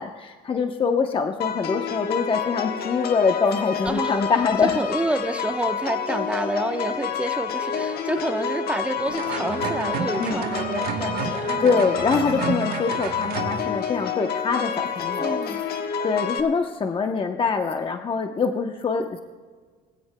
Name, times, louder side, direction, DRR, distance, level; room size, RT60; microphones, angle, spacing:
voice 1, 0.0-4.8 10.2-10.4 11.6-15.4 16.0-19.2, left 5 dB, 30° left, 4 dB, 0.9 m, -24 dB
sound 1, 1.4-16.4, left 7 dB, 65° left, 1.2 m, -29 dB
voice 2, 3.8-11.7 15.2-15.6, right 1 dB, 5° right, 7 dB, 1.0 m, -29 dB
sound 2, 9.1-13.6, right 8 dB, 65° right, 1.1 m, -30 dB
22.0 x 16.0 x 2.2 m, 1.5 s
cardioid pair, 110°, 17 cm